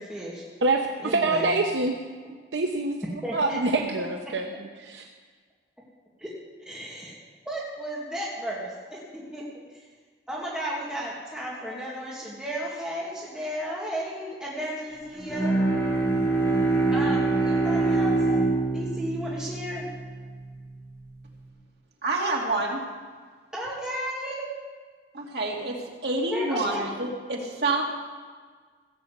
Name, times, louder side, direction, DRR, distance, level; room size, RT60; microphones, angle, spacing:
voice 1, 0.0-0.4 1.0-1.6 3.2-3.8 6.2-6.3 6.7-7.1 7.5-9.4 9.7-9.8 10.3-15.6 16.9-18.2 18.7-19.9 23.5-24.5 26.3-26.9, equal, 5° right, -6 dB, 2.1 m, -34 dB
voice 2, 0.6-2.0 2.5-3.0 3.3-5.1, right 2 dB, 85° right, 2 dB, 0.9 m, -25 dB
Bowed string instrument, 15.2-20.5, right 2 dB, 15° left, 2.7 m, -25 dB
voice 3, 22.0-22.8 25.1-25.8 26.0-27.8, right 2 dB, 65° right, -1 dB, 2.5 m, -27 dB
16.0 x 7.2 x 8.0 m, 1.6 s
head